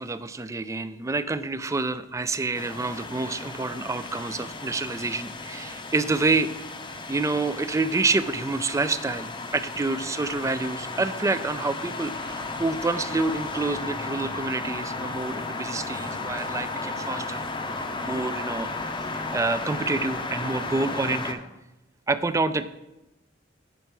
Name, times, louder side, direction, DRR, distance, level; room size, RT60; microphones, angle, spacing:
voice 1, 0.0-6.5 7.1-17.4 18.0-18.7 19.1-21.4 22.1-22.7, right 3 dB, 15° right, 13 dB, 0.3 m, -28 dB
sound 1, 2.5-21.3, left 3 dB, 25° left, 0.6 m, -34 dB
8.2 x 5.5 x 4.5 m, 0.97 s
head